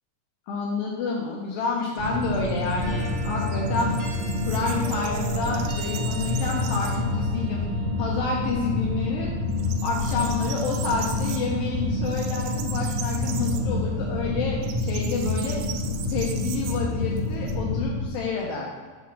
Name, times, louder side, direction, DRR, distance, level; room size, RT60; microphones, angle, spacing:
voice 1, 0.5-4.0 4.4-7.6 8.0-9.3 9.8-15.6 16.1-18.7, left 4 dB, 75° left, -2 dB, 2.2 m, -29 dB
sound 1, 1.3-7.2 7.5-7.6 8.0-8.8 9.1-17.6, right 9 dB, 85° right, 2.9 m, -40 dB
sound 2, 2.0-18.1, left 2 dB, 30° left, 1.3 m, -28 dB
sound 3, 2.8-13.5, right 2 dB, 35° right, 1.2 m, -41 dB
7.3 x 3.6 x 6.0 m, 1.5 s
omnidirectional pair, 4.9 m